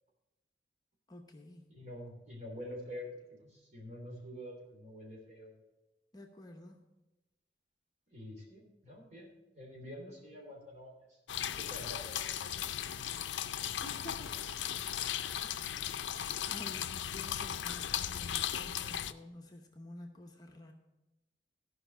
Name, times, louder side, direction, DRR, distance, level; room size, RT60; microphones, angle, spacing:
voice 1, 1.1-1.7 6.1-6.8 13.8-14.5 15.3-15.7 16.1-20.7, left 1 dB, 20° left, 2 dB, 0.8 m, -50 dB
voice 2, 1.7-5.6 8.1-9.3 9.5-12.5, left 1 dB, 40° right, -1 dB, 3.1 m, -47 dB
sound 1, 11.3-19.1, left 10 dB, 85° left, 0.5 m, -37 dB
14.0 x 5.6 x 6.1 m, 1.0 s
head